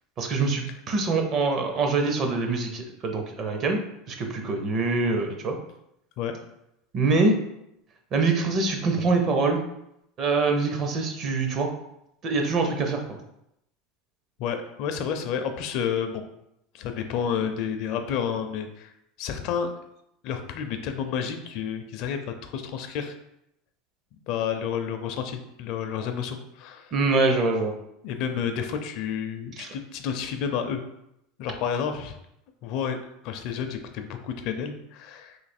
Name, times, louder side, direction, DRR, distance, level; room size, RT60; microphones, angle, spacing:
voice 1, 0.2-3.8 4.1-5.6 6.9-7.4 8.1-9.6 10.2-11.7 12.2-13.2 26.9-27.7 29.6-29.7, right 3 dB, 35° right, 4 dB, 0.6 m, -24 dB
voice 2, 14.4-16.2 16.7-18.9 19.2-19.7 20.2-23.1 24.3-26.9 28.0-30.8 31.4-32.1 32.6-33.0 33.2-35.4, left 7 dB, 55° left, 6 dB, 0.4 m, -30 dB
3.2 x 2.7 x 4.2 m, 0.80 s
supercardioid pair, 140°, 0 cm